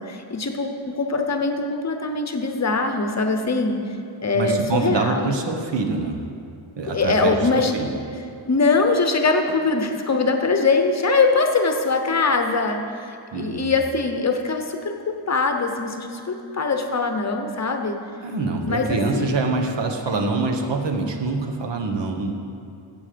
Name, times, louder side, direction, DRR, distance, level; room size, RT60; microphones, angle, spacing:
voice 1, 0.0-3.8 4.2-5.3 6.9-7.7 8.5-18.0 18.6-19.3 20.1-20.2, left 3 dB, 35° left, 5 dB, 0.8 m, -22 dB
voice 2, 4.3-6.2 6.8-7.9 13.3-13.7 18.2-22.3, right 3 dB, 65° right, 3 dB, 1.2 m, -25 dB
15.0 x 7.7 x 5.1 m, 2.5 s
wide cardioid pair, 170°, 45 cm